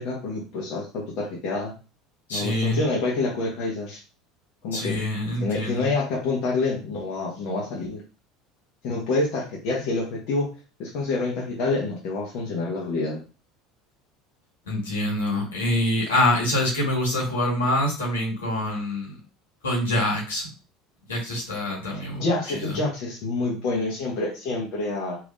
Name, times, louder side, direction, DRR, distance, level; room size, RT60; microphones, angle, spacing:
voice 1, 0.0-1.7 2.3-4.0 4.6-5.0 5.4-8.0 8.8-10.5 10.8-13.2 22.1-25.2, left 3 dB, 60° left, -3 dB, 1.0 m, -27 dB
voice 2, 2.3-2.8 4.7-5.9 14.7-19.2 19.6-20.5 21.1-22.2 22.5-22.6, left 1 dB, 85° left, -4 dB, 1.5 m, -25 dB
3.4 x 2.9 x 2.5 m, 0.33 s
hypercardioid pair, 70°, 0 cm